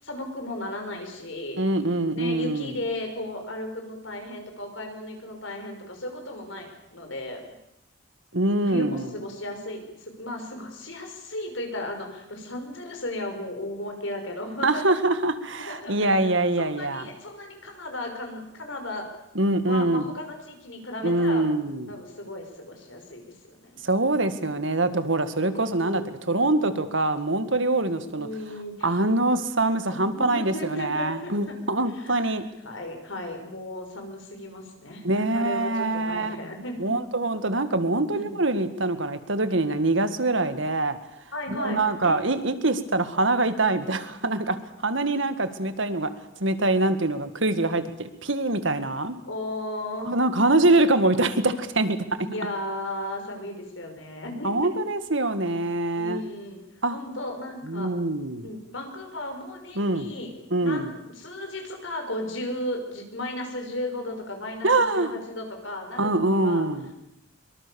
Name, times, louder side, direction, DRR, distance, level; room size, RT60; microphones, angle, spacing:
voice 1, 0.0-1.6 2.1-7.4 8.6-14.9 15.6-16.3 16.6-19.1 19.7-21.4 21.9-23.8 25.5-26.6 28.1-29.1 30.0-32.4 32.6-36.9 38.1-38.4 41.3-42.2 49.3-50.2 50.6-50.8 52.2-54.7 56.0-56.6 56.9-57.9 58.4-60.3 60.6-66.7, left 1 dB, 65° left, 4 dB, 5.8 m, -35 dB
voice 2, 1.6-2.7 8.3-9.1 14.6-17.1 19.4-20.1 21.0-21.9 23.8-28.3 28.8-32.4 35.0-36.4 36.8-41.0 41.5-44.6 44.8-46.1 46.4-49.2 50.1-52.0 54.4-56.2 56.8-57.0 57.7-58.5 59.8-60.1 60.5-60.9 64.6-65.1 66.0-66.9, right 2 dB, 65° right, 10 dB, 2.0 m, -24 dB
24.0 x 23.5 x 7.1 m, 0.84 s
head